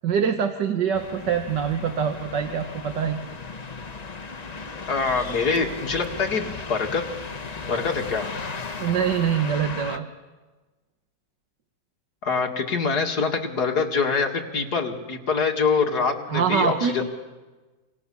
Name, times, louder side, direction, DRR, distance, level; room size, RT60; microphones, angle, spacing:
voice 1, 0.0-3.2 8.8-10.1 16.3-17.0, right 7 dB, 65° right, 6 dB, 1.7 m, -24 dB
sound 1, 0.9-10.0, left 4 dB, 35° left, 0.7 m, -36 dB
voice 2, 4.9-7.0 7.7-8.3 12.2-17.0, left 5 dB, 50° left, 2 dB, 2.7 m, -24 dB
27.0 x 26.0 x 7.2 m, 1.3 s
omnidirectional pair, 2.1 m